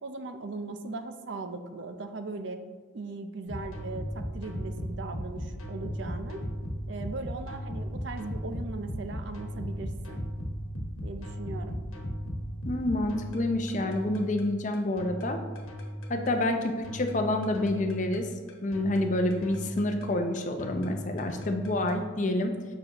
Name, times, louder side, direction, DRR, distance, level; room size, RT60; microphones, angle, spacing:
voice 1, 0.0-2.6 2.9-6.4 6.9-10.3 11.0-11.8 16.1-16.5, right 3 dB, 55° right, 8 dB, 0.5 m, -39 dB
sound 1, 3.5-22.0, equal, 85° left, 1.1 m, -37 dB
voice 2, 12.7-15.4 16.1-18.3 18.6-22.5, left 1 dB, 35° left, 5 dB, 0.6 m, -28 dB
7.6 x 5.9 x 2.9 m, 1.4 s
head